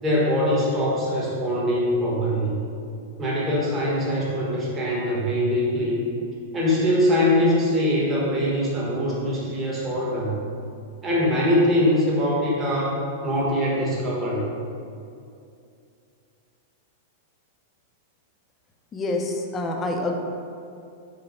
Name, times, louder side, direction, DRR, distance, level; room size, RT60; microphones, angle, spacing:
voice 1, 0.0-2.6 3.2-6.0 6.5-10.3 11.0-13.0 13.2-14.5, equal, 20° right, -5 dB, 1.0 m, -22 dB
voice 2, 18.9-20.2, left 2 dB, 20° left, 2 dB, 0.4 m, -27 dB
5.3 x 2.0 x 4.1 m, 2.5 s
supercardioid pair, 150°, 0 cm